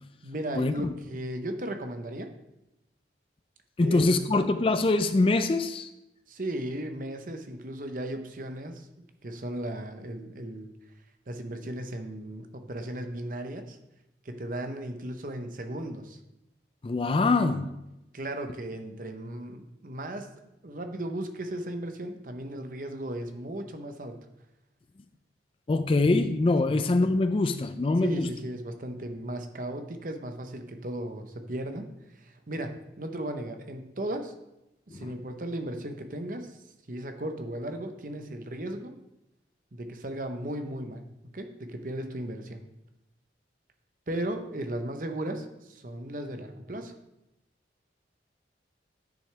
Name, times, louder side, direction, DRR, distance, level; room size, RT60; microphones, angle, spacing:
voice 1, 0.2-2.3 3.8-4.1 6.3-10.7 11.3-13.8 14.2-16.2 18.1-20.3 20.6-24.2 26.6-26.8 28.0-34.3 34.9-39.0 39.7-41.0 41.3-42.6 44.1-46.9, right 1 dB, 45° right, 0.8 m, -36 dB
voice 2, 3.8-5.9 16.8-17.7 25.7-28.3 34.9-35.1, left 2 dB, 30° left, 0.3 m, -24 dB
10.0 x 6.2 x 3.3 m
head